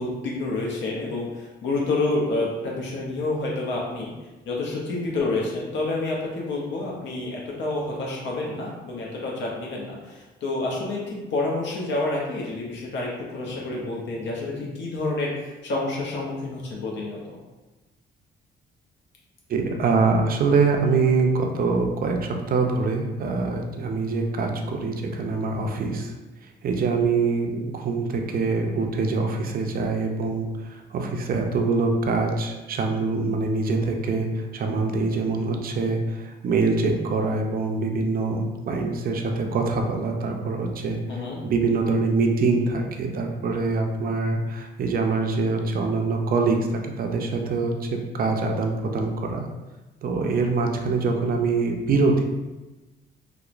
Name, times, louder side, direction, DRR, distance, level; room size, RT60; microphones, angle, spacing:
voice 1, 0.0-17.2 41.1-41.4, left 2 dB, 65° left, -3 dB, 0.6 m, -28 dB
voice 2, 19.5-26.1 26.6-41.0 41.4-46.6 46.8-49.5 50.0-52.2, right 4 dB, 50° right, 3 dB, 0.4 m, -24 dB
2.9 x 2.0 x 2.4 m, 1.1 s
cardioid pair, 90°, 20 cm